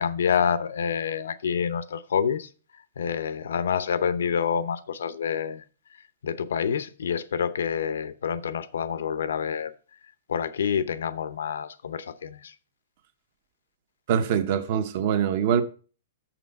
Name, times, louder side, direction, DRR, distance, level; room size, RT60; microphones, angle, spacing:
voice 1, 0.0-2.5 3.0-5.6 6.2-9.7 10.3-12.5, left 7 dB, 90° left, 0.7 m, -27 dB
voice 2, 14.1-15.6, right 8 dB, 40° right, 0.8 m, -23 dB
6.9 x 6.0 x 5.3 m
hypercardioid pair, 165°, 0 cm